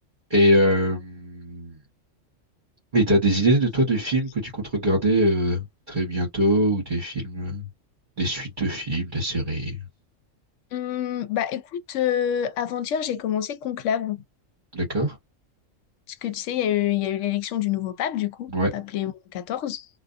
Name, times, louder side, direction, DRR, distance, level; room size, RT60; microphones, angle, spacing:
voice 1, 0.3-1.7 2.9-7.7 8.2-9.8 14.7-15.2 18.5-18.7, right 1 dB, 40° right, 1.2 m, -23 dB
voice 2, 3.3-3.9 10.7-14.2 16.1-19.9, left 10 dB, 75° left, 0.9 m, -27 dB
2.5 x 2.3 x 2.5 m
omnidirectional pair, 1.3 m